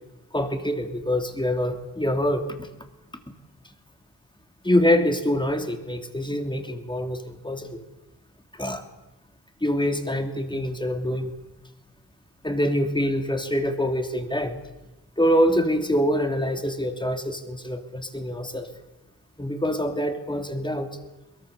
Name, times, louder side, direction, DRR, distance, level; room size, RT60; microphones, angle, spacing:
voice 1, 0.3-2.7 4.6-7.8 8.5-8.8 9.6-11.3 12.4-14.6 15.2-18.7 19.4-20.9, equal, 10° left, 6 dB, 2.9 m, -25 dB
22.5 x 22.0 x 7.0 m, 1.0 s
wide cardioid pair, 95°, 40 cm